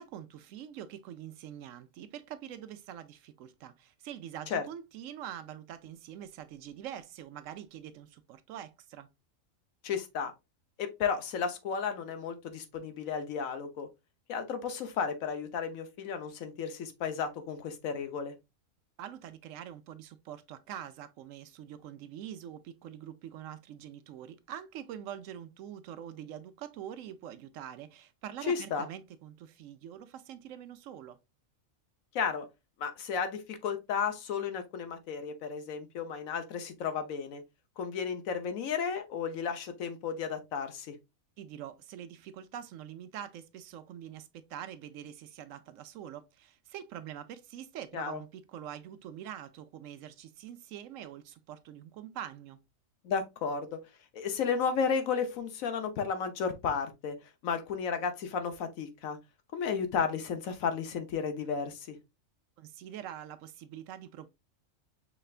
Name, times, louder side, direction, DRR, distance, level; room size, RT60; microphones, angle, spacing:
voice 1, 0.0-9.1 19.0-31.2 41.4-52.6 62.6-64.3, right 10 dB, 75° right, 0.9 m, -44 dB
voice 2, 9.8-10.3 10.8-13.9 14.3-18.3 28.4-28.9 32.1-32.5 32.8-37.4 37.8-40.9 47.9-48.2 53.0-53.8 54.1-57.2 57.4-59.2 59.5-62.0, left 6 dB, 85° left, 1.2 m, -33 dB
5.7 x 3.3 x 2.4 m
omnidirectional pair, 1.4 m